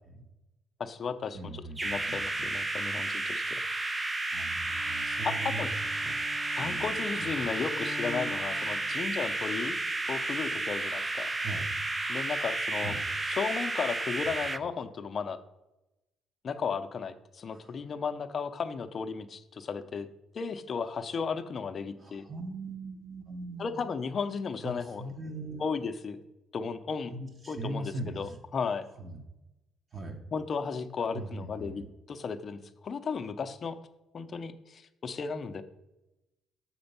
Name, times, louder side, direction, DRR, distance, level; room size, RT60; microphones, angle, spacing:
voice 1, 0.8-3.6 5.2-5.7 6.6-9.8 10.1-11.3 12.1-12.9 13.2-15.4 16.4-20.1 20.3-22.2 23.6-25.0 25.6-26.2 26.5-27.1 27.5-28.9 30.3-33.8 34.1-35.6, left 5 dB, 40° left, 10 dB, 0.5 m, -34 dB
voice 2, 1.3-2.5 4.3-5.7 6.0-6.2 6.6-6.9 7.2-7.3 11.4-11.7 12.8-13.0 17.5-17.8 22.0-23.8 24.6-25.6 27.1-28.4 29.0-29.2 29.9-30.2 31.1-31.9, right 2 dB, 35° right, 1 dB, 0.9 m, -40 dB
sound 1, 1.8-14.6, right 2 dB, 15° right, 0.3 m, -32 dB
Bowed string instrument, 4.6-9.6, left 3 dB, 60° left, 0.9 m, -46 dB
6.9 x 4.3 x 5.4 m, 0.96 s
cardioid pair, 120°, 0 cm